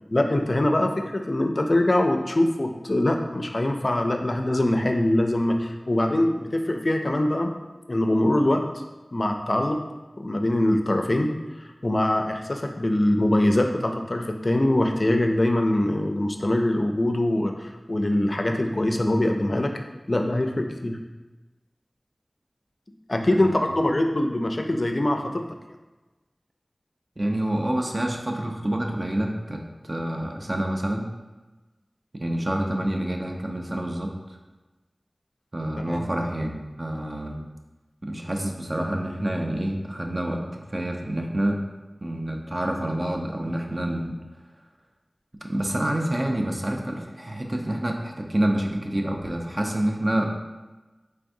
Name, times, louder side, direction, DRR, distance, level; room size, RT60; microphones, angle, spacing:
voice 1, 0.1-7.6 7.9-8.6 9.1-9.8 10.2-11.3 11.8-19.7 20.1-21.0 23.1-25.3 35.9-36.0, left 1 dB, 55° left, 4 dB, 0.4 m, -23 dB
voice 2, 23.3-23.7 27.2-31.1 32.1-34.1 35.5-37.4 38.0-41.6 42.0-44.2 45.4-50.4, right 1 dB, 45° right, 1 dB, 0.5 m, -27 dB
4.7 x 3.3 x 2.6 m, 1.2 s
wide cardioid pair, 55°, 0 cm